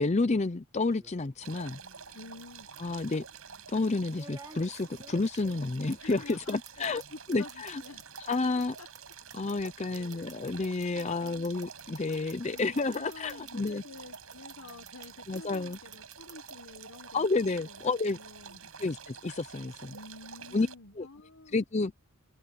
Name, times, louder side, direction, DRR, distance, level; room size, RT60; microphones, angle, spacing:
voice 1, 0.0-1.8 2.8-3.2 3.7-7.0 7.3-7.8 8.3-8.7 9.3-13.8 15.3-15.8 17.1-18.2 18.8-19.9 20.5-20.7 21.0-21.1 21.5-21.9, left 3 dB, 30° left, 0.5 m, -30 dB
sound 1, 0.9-1.3 2.5-2.6 4.1-7.1 7.3-13.7 14.0-15.1 15.3-16.5, right 4 dB, 15° right, 1.6 m, -51 dB
sound 2, 1.4-20.8, right 6 dB, 80° right, 6.4 m, -49 dB
voice 2, 2.1-2.7 6.0-6.6 7.1-8.0 8.8-8.9 9.9-10.3 10.9-11.5 12.5-17.4 17.7-19.0 19.9-21.6, left 3 dB, 75° left, 1.4 m, -49 dB
head